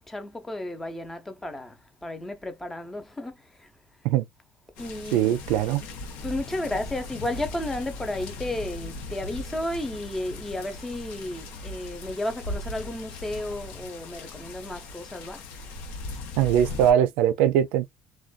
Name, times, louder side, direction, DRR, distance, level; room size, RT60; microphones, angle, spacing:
voice 1, 0.0-3.7 4.8-5.4 6.2-15.5, left 1 dB, 10° left, 0.6 m, -33 dB
sound 1, 4.8-16.9, left 2 dB, 80° left, 0.8 m, -38 dB
voice 2, 5.1-5.8 16.4-17.9, right 10 dB, 80° right, 0.3 m, -21 dB
2.5 x 2.2 x 2.2 m
cardioid pair, 120°, 2 cm